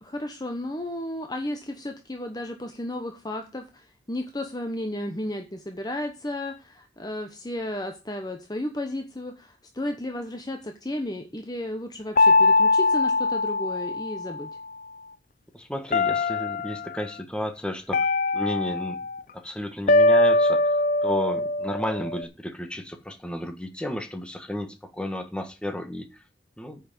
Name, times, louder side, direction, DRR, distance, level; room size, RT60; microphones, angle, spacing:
voice 1, 0.0-14.5, left 1 dB, 20° left, 5 dB, 1.0 m, -33 dB
sound 1, 12.2-14.5 15.9-16.9 17.9-19.2 19.9-22.2, left 2 dB, 45° left, 0.6 m, -22 dB
voice 2, 15.5-18.1 18.3-19.0 19.3-20.8 21.0-26.2 26.6-26.8, left 1 dB, 5° left, 7 dB, 1.4 m, -33 dB
9.5 x 5.9 x 6.8 m, 0.29 s
head